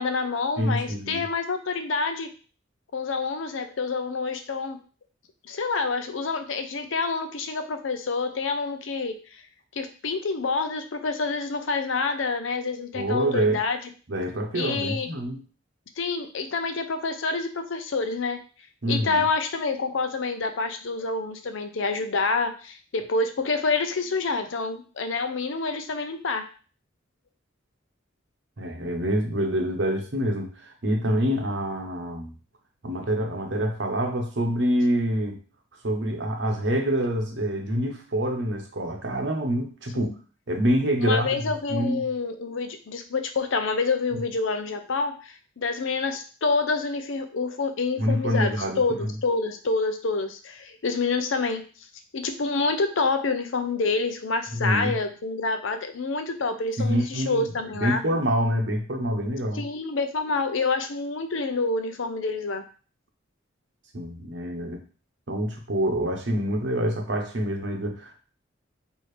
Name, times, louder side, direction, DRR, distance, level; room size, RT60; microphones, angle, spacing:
voice 1, 0.0-2.3 2.9-4.8 5.4-9.4 9.7-13.8 14.5-15.1 16.0-18.4 18.9-26.4 39.9-40.2 41.0-51.6 52.1-58.0 59.5-62.6, left 4 dB, 75° left, 7 dB, 0.6 m, -27 dB
voice 2, 0.6-1.2 12.9-13.6 14.1-15.4 18.8-19.2 28.6-32.3 32.8-35.4 35.8-40.1 40.5-41.4 41.7-42.0 48.0-49.1 54.5-54.9 56.8-57.4 57.7-59.6 63.9-64.8 65.3-68.2, equal, 60° right, 3 dB, 0.9 m, -26 dB
4.7 x 2.7 x 3.2 m, 0.37 s
head